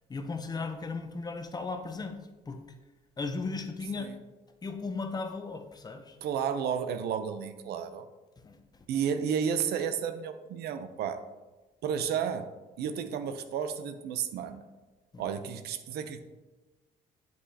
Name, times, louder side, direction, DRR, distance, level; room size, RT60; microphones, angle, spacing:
voice 1, 0.1-2.2 2.5-2.6 3.2-4.1 4.6-6.2 8.4-8.6 15.1-15.3, left 4 dB, 25° left, 7 dB, 0.7 m, -36 dB
voice 2, 6.2-8.1 8.9-11.2 11.8-12.5 12.8-14.6 15.2-16.2, right 7 dB, 70° right, 10 dB, 0.6 m, -32 dB
8.3 x 7.8 x 2.8 m, 1.2 s
cardioid pair, 110°, 17 cm